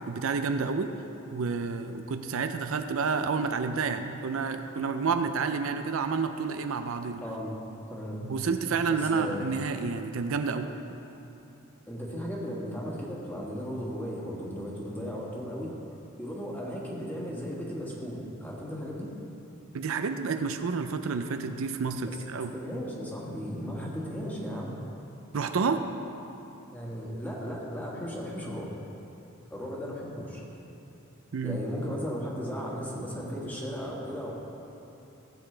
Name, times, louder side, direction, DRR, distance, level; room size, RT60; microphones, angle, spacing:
voice 1, 0.1-0.9 1.3-7.2 8.2-10.7 19.7-22.5 25.3-25.8 31.3-31.6, right 5 dB, 70° right, 8 dB, 0.5 m, -29 dB
voice 2, 7.2-7.5 7.9-8.2 8.9-9.4 11.9-15.7 16.2-19.1 22.1-24.8 26.7-28.7 29.5-30.4 31.4-34.3, equal, 10° left, -4 dB, 1.7 m, -36 dB
16.0 x 8.0 x 3.3 m, 2.9 s
head